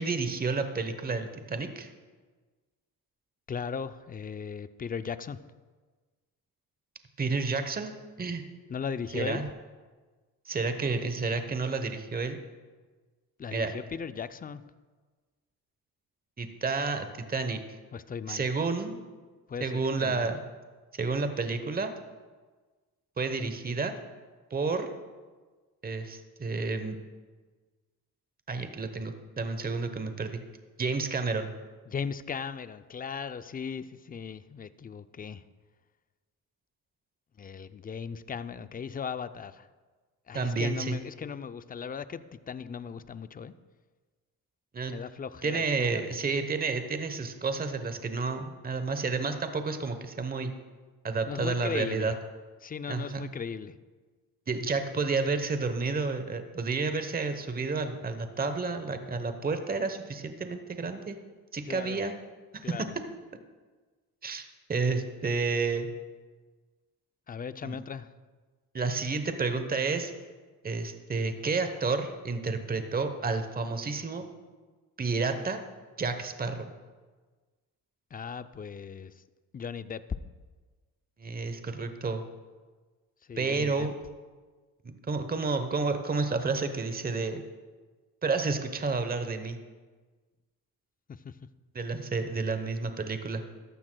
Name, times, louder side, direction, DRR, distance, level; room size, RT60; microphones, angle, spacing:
voice 1, 0.0-1.9 7.2-8.4 9.1-9.5 10.5-12.4 13.5-13.7 16.4-17.6 18.3-19.0 19.6-20.4 20.9-21.9 23.2-23.9 24.5-24.9 25.8-27.0 28.5-30.4 30.8-31.5 40.3-41.0 44.7-45.0 45.4-50.5 51.0-52.1 52.9-53.2 54.5-61.2 61.5-62.1 62.5-62.9 64.2-65.9 67.6-67.8 68.7-70.1 70.6-74.2 75.0-75.6 76.0-76.7 81.2-82.2 83.4-83.9 84.8-87.4 88.2-89.6 91.7-93.4, right 4 dB, 25° right, 8 dB, 0.9 m, -30 dB
voice 2, 3.5-5.4 8.7-9.4 13.4-14.6 17.9-18.5 19.5-20.3 31.9-35.4 37.4-39.7 40.3-43.5 44.9-46.2 51.3-52.1 52.6-53.8 61.6-62.0 62.6-63.0 67.3-68.1 78.1-79.2 79.5-80.0 83.3-83.9 91.1-91.4, left 6 dB, 25° left, 13 dB, 0.4 m, -37 dB
14.0 x 12.5 x 2.2 m, 1.4 s
cardioid pair, 80°, 39 cm